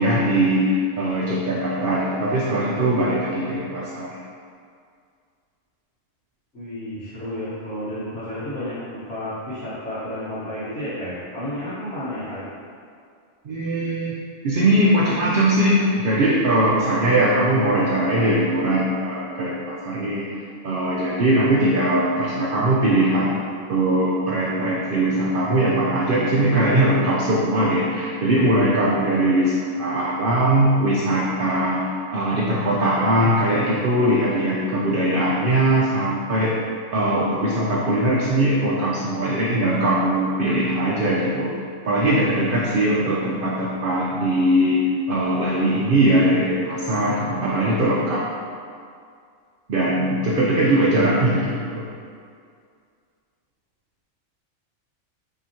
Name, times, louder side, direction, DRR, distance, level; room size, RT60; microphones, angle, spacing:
voice 1, 0.0-4.2 13.4-14.1 14.4-20.3 20.6-23.4 23.7-36.5 36.9-41.5 41.8-48.2 49.7-51.9, right 1 dB, 65° right, -5 dB, 0.5 m, -20 dB
voice 2, 6.5-12.4, left 1 dB, 60° left, -13 dB, 1.4 m, -31 dB
5.9 x 2.8 x 2.8 m, 2.2 s
omnidirectional pair, 1.5 m